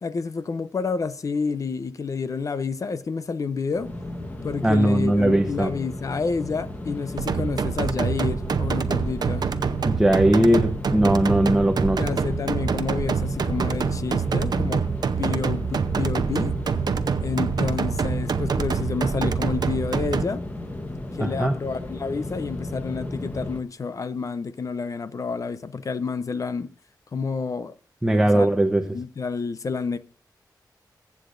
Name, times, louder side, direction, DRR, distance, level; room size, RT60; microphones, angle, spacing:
voice 1, 0.0-3.9 4.4-9.5 12.0-14.8 15.2-16.6 17.2-20.4 21.1-26.7 27.1-27.7 28.1-28.5 28.8-30.0, left 5 dB, 50° left, 0.6 m, -29 dB
sound 1, 3.7-23.6, left 1 dB, 25° left, 1.3 m, -35 dB
voice 2, 4.6-5.7 9.8-12.0 21.2-21.5 28.0-28.8, right 1 dB, 10° right, 0.8 m, -19 dB
sound 2, 7.2-20.2, right 6 dB, 65° right, 0.6 m, -26 dB
22.5 x 8.4 x 2.6 m
wide cardioid pair, 165°, 7 cm